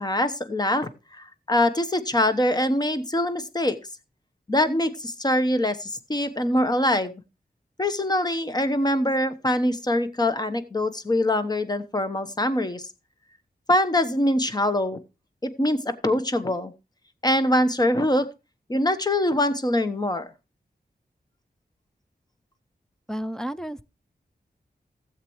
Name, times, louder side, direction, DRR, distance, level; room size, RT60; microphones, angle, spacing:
voice 1, 0.0-3.8 4.5-7.1 7.8-12.9 13.7-15.0 15.4-16.7 17.2-18.3 18.7-20.3, left 1 dB, 25° left, 1.0 m, -23 dB
voice 2, 23.1-23.8, equal, 5° left, 0.5 m, -31 dB
16.0 x 7.5 x 3.1 m
wide cardioid pair, 90°, 17 cm